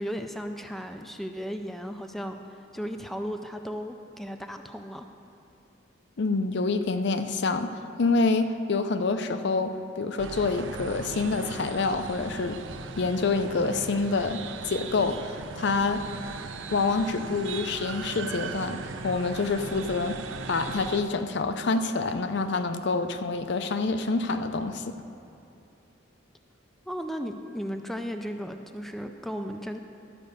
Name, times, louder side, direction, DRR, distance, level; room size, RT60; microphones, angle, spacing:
voice 1, 0.0-2.4 2.7-5.1 26.9-29.8, equal, ahead, 5 dB, 0.4 m, -35 dB
voice 2, 6.2-12.6 13.0-16.0 16.7-20.2 20.5-24.9, left 3 dB, 60° left, 8 dB, 0.5 m, -27 dB
sound 1, 10.2-21.0, right 4 dB, 80° right, 0.5 m, -38 dB
12.5 x 5.3 x 6.6 m, 2.7 s
head